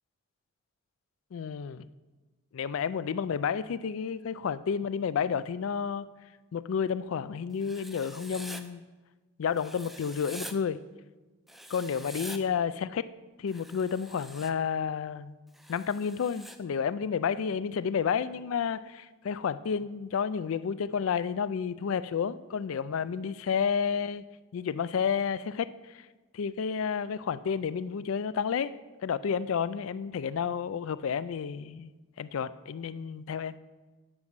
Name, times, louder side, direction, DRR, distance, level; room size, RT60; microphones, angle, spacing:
voice 1, 1.3-1.9 2.5-6.1 6.5-8.8 9.4-10.8 11.7-13.1 13.4-15.4 15.7-24.2 24.5-26.0 26.3-31.9 32.2-33.6, left 7 dB, 70° left, 0.4 m, -31 dB
Writing, 7.6-8.6 9.6-10.5 11.5-12.4 13.5-14.5 15.5-16.6, equal, ahead, 0.4 m, -45 dB
9.6 x 5.3 x 6.2 m
head